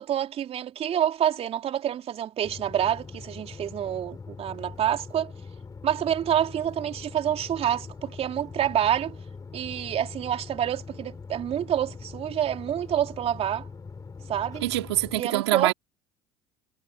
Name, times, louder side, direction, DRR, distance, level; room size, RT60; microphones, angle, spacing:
voice 1, 0.0-5.3 5.8-9.2 9.5-13.7 14.3-14.6 15.2-15.7, right 10 dB, 45° right, 3.9 m, -27 dB
sound 1, 2.4-15.2, left 4 dB, 25° left, 7.3 m, -42 dB
voice 2, 14.6-15.7, right 16 dB, 80° right, 3.1 m, -25 dB
hypercardioid pair, 65°, 14 cm